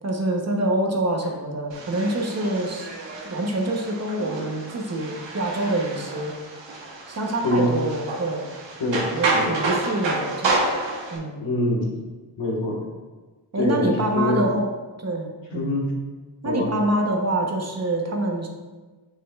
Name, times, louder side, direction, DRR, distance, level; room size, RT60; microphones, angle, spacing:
voice 1, 0.0-2.9 3.2-6.4 7.1-8.5 9.1-10.7 11.1-11.4 13.5-14.7 15.0-15.7 16.4-18.5, right 1 dB, 35° right, 1 dB, 0.9 m, -26 dB
sound 1, 1.7-11.2, right 2 dB, 85° right, 1.1 m, -29 dB
voice 2, 8.8-9.5 11.4-11.9 12.4-12.8 13.5-14.5 15.5-15.9 16.4-16.7, left 1 dB, 90° left, -3 dB, 1.5 m, -24 dB
6.6 x 6.3 x 2.3 m, 1.3 s
wide cardioid pair, 110°, 43 cm